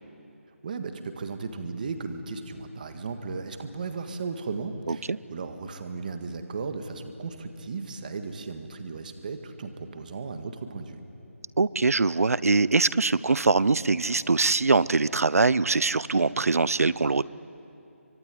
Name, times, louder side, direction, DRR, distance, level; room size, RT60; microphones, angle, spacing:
voice 1, 0.6-11.0, right 4 dB, 35° right, 8 dB, 1.8 m, -36 dB
voice 2, 4.9-5.2 11.6-17.2, right 3 dB, 85° right, 19 dB, 0.7 m, -23 dB
25.0 x 23.0 x 10.0 m, 2.9 s
figure-of-eight pair, 170°, 8 cm